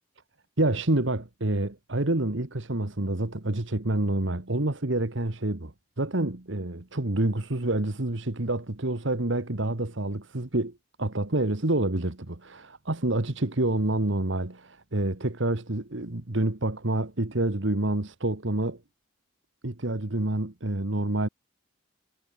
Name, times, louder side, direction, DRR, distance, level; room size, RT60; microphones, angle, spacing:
voice 1, 0.6-18.8 19.6-21.3, right 2 dB, 60° right, 1.6 m, -28 dB
head